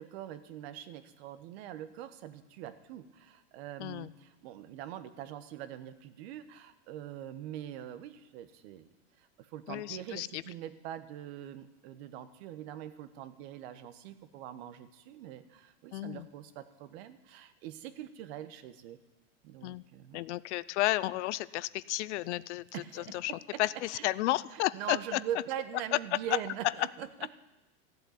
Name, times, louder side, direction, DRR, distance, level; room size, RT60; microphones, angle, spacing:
voice 1, 0.0-8.9 9.2-19.0 19.4-20.2 22.7-23.6 23.9-24.0 24.5-27.3, right 11 dB, 60° right, 11 dB, 1.2 m, -43 dB
voice 2, 3.8-4.1 9.7-10.4 15.9-16.3 19.6-19.8 20.1-22.6 23.1-23.3 23.6-25.2, left 17 dB, 70° left, 19 dB, 0.6 m, -32 dB
14.5 x 7.9 x 9.2 m, 1.0 s
supercardioid pair, 140°, 36 cm